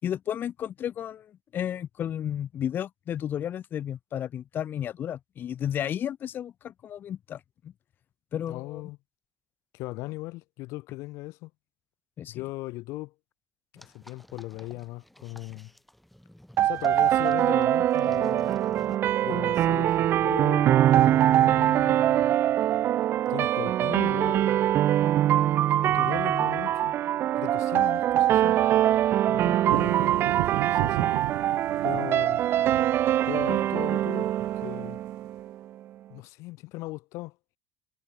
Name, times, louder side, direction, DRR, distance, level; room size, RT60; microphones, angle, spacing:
voice 1, 0.0-7.7 8.3-8.8 12.2-12.4, left 10 dB, 40° left, 5.1 m, -33 dB
voice 2, 8.5-9.0 9.7-11.5 12.3-13.1 13.7-15.7 16.6-18.5 19.2-22.4 23.3-24.7 25.7-27.0 27.4-28.6 29.3-30.1 30.7-31.1 31.8-32.4 33.3-34.3 34.6-35.0 36.1-37.4, left 21 dB, 65° left, 3.8 m, -38 dB
sound 1, 13.8-19.0, equal, ahead, 5.2 m, -50 dB
sound 2, 16.6-35.5, right 12 dB, 45° right, 1.5 m, -23 dB
sound 3, 29.7-35.1, right 39 dB, 80° right, 1.8 m, -34 dB
cardioid pair, 145°, 5 cm